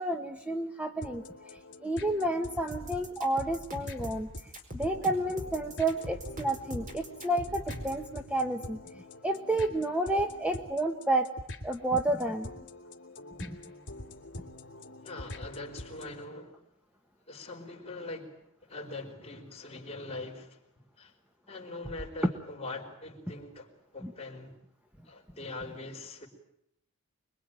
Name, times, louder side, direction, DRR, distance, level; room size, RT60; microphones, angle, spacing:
voice 1, 0.0-1.5 1.8-4.3 4.7-8.8 9.2-11.3 11.6-12.5 13.5-13.6 24.0-24.1, right 1 dB, 5° right, 5 dB, 1.2 m, -30 dB
sound 1, 1.0-16.2, left 1 dB, 55° left, 2.8 m, -45 dB
sound 2, 2.7-8.0, equal, 35° right, 4.6 m, -42 dB
voice 2, 15.0-16.6 17.3-20.6 21.0-21.1 21.5-24.5 25.0-26.3, left 2 dB, 30° left, 0 dB, 4.7 m, -42 dB
25.0 x 22.0 x 9.0 m, 0.78 s
head